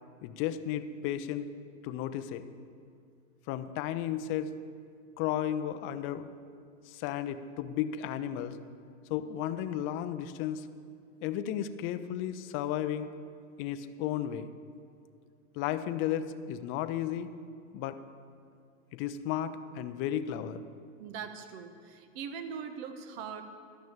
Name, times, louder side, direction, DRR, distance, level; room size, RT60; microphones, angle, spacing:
voice 1, 0.2-1.5 1.8-2.4 3.5-4.5 5.2-6.3 6.9-8.6 9.1-10.7 11.2-13.1 13.6-14.5 15.6-17.3 17.7-18.0 18.9-20.6, left 10 dB, 30° left, 11 dB, 0.5 m, -33 dB
voice 2, 21.0-23.4, right 7 dB, 50° right, 8 dB, 1.2 m, -41 dB
12.0 x 6.3 x 8.5 m, 2.2 s
hypercardioid pair, 125°, 39 cm